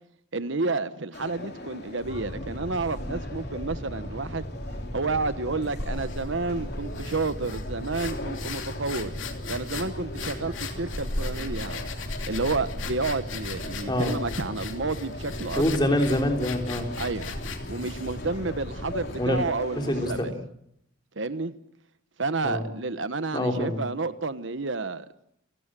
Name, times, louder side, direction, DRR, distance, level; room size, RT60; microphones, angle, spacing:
voice 1, 0.3-4.4 4.9-9.1 9.5-11.9 12.3-15.7 17.0-17.3 17.7-20.3 21.2-21.5 22.2-25.1, right 3 dB, 70° right, 13 dB, 1.1 m, -30 dB
sound 1, 1.1-20.2, left 1 dB, 50° left, 3.7 m, -41 dB
Boat Water vehicle, 2.0-19.4, equal, 20° right, 6.5 m, -38 dB
sound 2, 5.8-19.2, left 3 dB, 75° left, 2.9 m, -38 dB
voice 2, 13.9-14.2 15.6-16.9 19.2-19.4 19.8-20.4 22.4-22.6 23.3-23.8, left 1 dB, 20° left, 3 dB, 3.7 m, -25 dB
29.5 x 16.5 x 7.6 m, 0.76 s
head